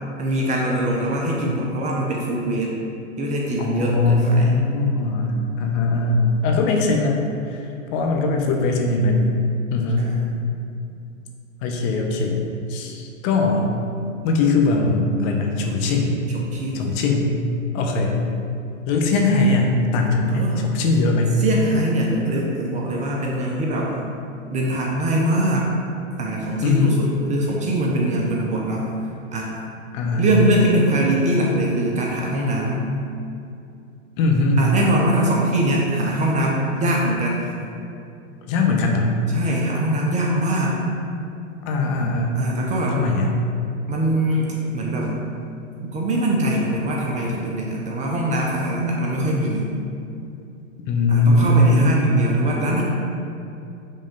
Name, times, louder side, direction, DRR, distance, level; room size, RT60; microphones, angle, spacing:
voice 1, 0.2-2.8 3.2-4.5 10.0-10.2 15.8-15.9 16.3-16.9 20.3-20.6 21.4-23.9 24.5-25.7 26.2-28.9 29.3-29.6 30.2-32.8 34.6-37.5 39.3-40.7 42.3-43.0 43.9-45.1 45.8-49.7 51.1-52.8, right 1 dB, 20° right, -2 dB, 0.6 m, -22 dB
voice 2, 3.6-7.2 7.5-7.6 7.9-9.2 9.7-10.1 11.6-13.7 14.2-16.2 16.7-17.3 17.7-18.2 18.9-21.4 26.6-27.0 29.9-30.3 34.2-34.6 38.4-39.1 41.7-42.4 42.9-43.3 50.9-52.4, left 2 dB, 40° left, 1 dB, 0.9 m, -20 dB
5.5 x 3.5 x 5.1 m, 2.6 s
hypercardioid pair, 120°, 39 cm